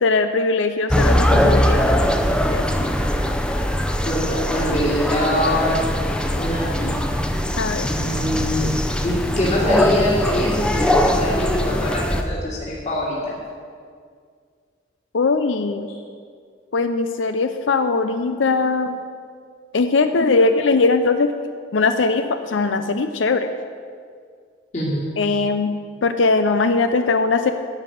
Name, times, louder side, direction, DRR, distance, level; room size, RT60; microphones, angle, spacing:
voice 1, 0.0-2.0 2.5-2.9 7.6-7.9 15.1-15.9 16.7-19.0 19.7-21.3 21.7-23.5 25.2-25.7 26.0-27.5, left 3 dB, 90° left, 8 dB, 0.5 m, -20 dB
sound 1, 0.9-12.2, equal, 5° left, 0.7 m, -21 dB
voice 2, 4.0-5.8 6.4-7.0 7.8-8.7 9.0-13.4 24.7-25.0, left 1 dB, 40° left, -5 dB, 2.4 m, -23 dB
11.5 x 6.0 x 9.1 m, 2.1 s
head